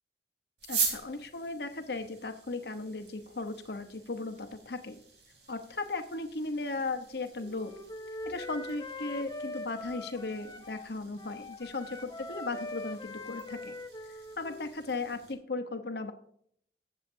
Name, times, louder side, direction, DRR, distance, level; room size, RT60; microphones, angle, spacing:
sound 1, 0.6-15.3, right 5 dB, 75° right, 3.0 m, -43 dB
voice 1, 0.7-5.0 5.5-7.7 8.2-13.7 14.4-16.1, left 3 dB, 65° left, 7 dB, 1.0 m, -36 dB
Wind instrument woodwind instrument, 7.4-10.9 11.2-14.7, left 2 dB, 25° left, 0.7 m, -42 dB
19.5 x 7.4 x 2.7 m, 0.66 s
head